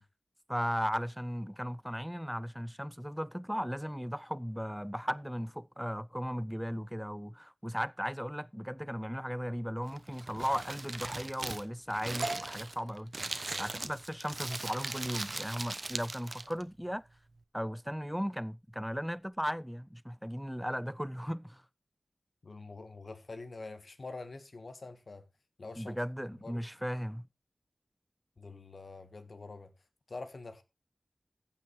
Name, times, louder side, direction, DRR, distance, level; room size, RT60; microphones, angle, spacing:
voice 1, 0.5-13.1 13.6-17.0 17.5-21.6 25.8-27.3, equal, ahead, 0.4 m, -36 dB
Crumpling crinkling, 9.8-16.6, right 2 dB, 50° right, 1.0 m, -40 dB
sound 1, 12.2-19.8, right 2 dB, 65° right, 2.0 m, -46 dB
voice 2, 13.4-13.8 22.4-25.2 25.6-26.0 26.4-26.7 28.4-29.7 30.1-30.6, left 3 dB, 70° left, 1.6 m, -46 dB
15.0 x 5.9 x 4.3 m
wide cardioid pair, 55°, 0 cm